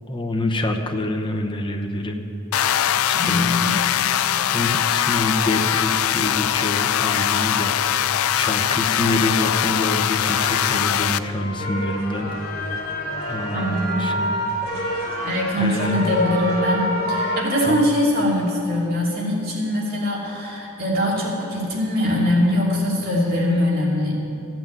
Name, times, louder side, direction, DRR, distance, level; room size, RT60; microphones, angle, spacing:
voice 1, 0.1-2.2 3.0-3.5 4.5-8.0 8.3-12.3 13.3-14.4 15.6-16.1 17.6-17.9, left 1 dB, 25° left, 3 dB, 1.0 m, -26 dB
sound 1, 2.5-11.2, left 10 dB, 80° left, 0.4 m, -21 dB
voice 2, 3.1-3.7 13.5-14.0 15.2-24.1, left 1 dB, 45° right, -4 dB, 2.7 m, -22 dB
sound 2, 10.1-17.4, equal, 50° left, 2.4 m, -28 dB
14.5 x 6.2 x 9.0 m, 2.8 s
head